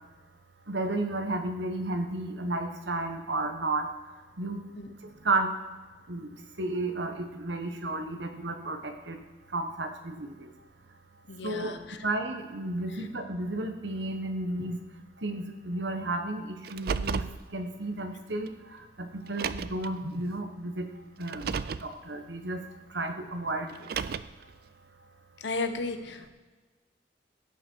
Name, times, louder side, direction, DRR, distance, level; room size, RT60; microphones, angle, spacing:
voice 1, 0.7-3.9 4.4-4.6 5.2-5.5 6.1-6.3 6.6-9.2 9.5-10.3 11.4-11.7 12.0-14.8 15.2-16.4 16.7-17.2 17.5-18.5 19.0-20.9 21.2-21.5 21.8-22.6 22.9-23.7, right 2 dB, 75° right, 6 dB, 1.2 m, -32 dB
voice 2, 11.3-12.0 25.4-26.3, left 3 dB, 75° left, 8 dB, 0.9 m, -34 dB
Car, 16.6-17.4 18.5-18.6 19.3-19.9 21.2-21.9 23.7-24.4, right 6 dB, 55° right, 0.3 m, -32 dB
16.5 x 6.0 x 4.6 m, 1.3 s
head